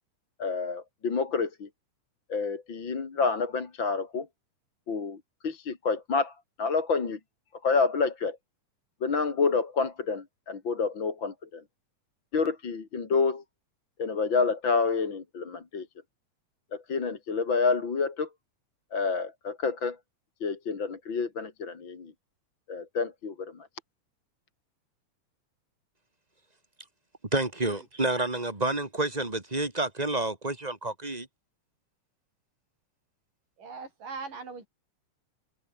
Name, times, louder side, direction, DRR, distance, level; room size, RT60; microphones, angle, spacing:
voice 1, 0.4-1.7 2.3-4.3 4.9-5.2 5.4-6.3 6.6-7.2 7.6-8.4 9.0-11.6 12.3-13.4 14.0-15.8 16.7-18.3 18.9-20.0 20.4-22.1 22.7-23.5, left 4 dB, 40° left, 3.1 m, -28 dB
voice 2, 27.3-31.3, right 2 dB, 15° right, 2.4 m, -29 dB
voice 3, 33.6-34.7, right 4 dB, 85° right, 7.6 m, -40 dB
open air
omnidirectional pair, 3.7 m